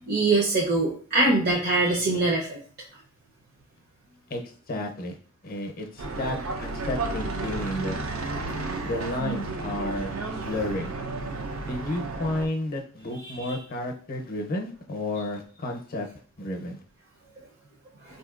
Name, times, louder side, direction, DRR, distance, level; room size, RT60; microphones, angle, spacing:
voice 1, 0.1-2.6, right 2 dB, 50° right, -4 dB, 0.7 m, -23 dB
voice 2, 4.7-5.2 5.4-8.0 8.8-10.9 11.6-16.1 16.4-16.8, left 1 dB, 45° left, 3 dB, 0.6 m, -32 dB
sound 1, 6.0-12.5, right 3 dB, 90° right, 0.6 m, -32 dB
4.2 x 2.7 x 2.4 m, 0.43 s
head